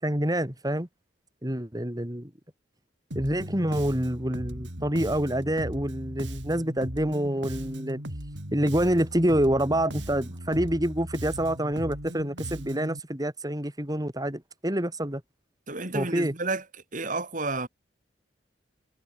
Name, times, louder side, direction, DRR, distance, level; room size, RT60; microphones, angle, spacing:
voice 1, 0.0-0.9 1.4-2.3 3.1-8.0 8.5-15.2 15.9-16.3, right 1 dB, 20° right, 3.8 m, -27 dB
Bass guitar, 3.1-13.0, right 1 dB, 85° right, 5.5 m, -38 dB
voice 2, 15.7-16.6 16.9-17.7, right 3 dB, 45° right, 4.6 m, -30 dB
head